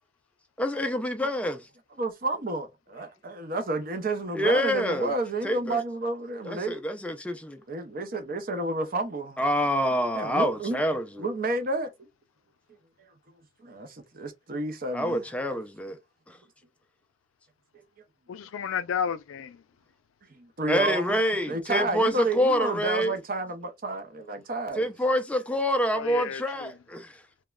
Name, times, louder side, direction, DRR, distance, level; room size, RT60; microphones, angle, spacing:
voice 1, 0.6-1.7 4.3-5.1 5.4-5.8 6.4-7.6 9.4-11.2 14.9-16.0 16.3-16.4 20.7-23.1 24.8-27.2, equal, 5° left, 0.3 m, -26 dB
voice 2, 2.0-6.8 7.7-9.4 10.1-10.8 11.2-11.9 13.6-15.2 20.3-24.9, right 2 dB, 45° right, 0.6 m, -31 dB
voice 3, 18.3-19.6 25.9-26.7, left 7 dB, 85° left, 0.4 m, -32 dB
3.0 x 2.1 x 2.2 m
head